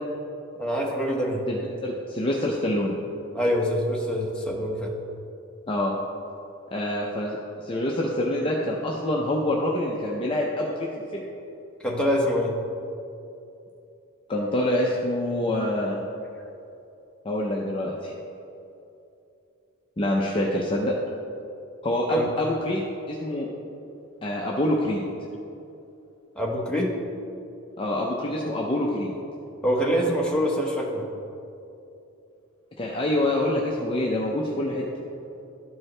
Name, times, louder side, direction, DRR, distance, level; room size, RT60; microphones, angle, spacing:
voice 1, 0.6-1.4 3.3-4.9 11.8-12.5 22.1-22.3 26.4-27.0 29.6-31.1, equal, 5° left, -3 dB, 1.0 m, -25 dB
voice 2, 1.5-2.9 5.7-5.9 6.7-10.9 11.1-11.2 14.3-16.0 17.2-18.1 20.0-21.0 21.8-23.5 24.2-25.0 27.8-29.1 32.8-34.8, left 1 dB, 25° left, -3 dB, 0.5 m, -26 dB
12.5 x 4.5 x 3.3 m, 2.8 s
head